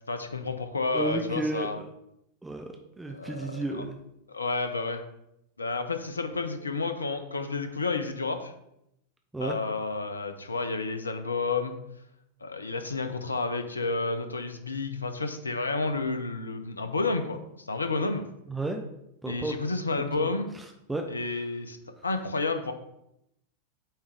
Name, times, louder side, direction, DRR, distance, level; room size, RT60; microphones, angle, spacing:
voice 1, 0.1-1.8 3.1-3.8 4.3-5.0 5.6-8.5 9.4-11.7 12.4-18.2 19.3-20.5 21.1-21.8 22.0-22.7, left 3 dB, 75° left, 8 dB, 0.6 m, -30 dB
voice 2, 0.9-1.9 2.4-4.0 9.3-9.6 18.5-18.8 19.2-19.6 20.2-21.0, right 2 dB, 10° right, 3 dB, 0.6 m, -33 dB
8.7 x 3.5 x 3.4 m, 0.81 s
figure-of-eight pair, 90°, 0 cm